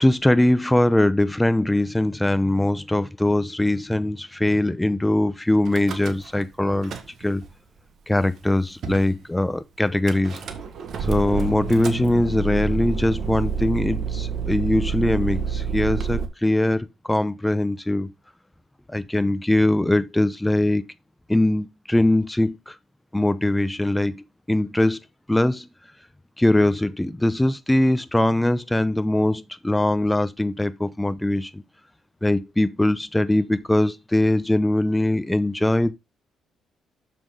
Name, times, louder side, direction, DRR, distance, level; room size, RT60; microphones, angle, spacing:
voice 1, 0.0-6.9 7.2-7.4 8.1-10.4 11.1-18.1 18.9-20.9 21.3-22.7 23.1-25.0 25.3-25.7 26.4-31.6 32.2-35.9, left 1 dB, 10° left, 0.8 m, -21 dB
Car / Engine starting / Idling, 5.7-6.4 6.7-7.5 8.2-8.3 8.4-8.5 8.8-9.1 10.1-16.2, right 5 dB, 60° right, 1.6 m, -28 dB
7.1 x 6.3 x 3.7 m
cardioid pair, 90°, 0 cm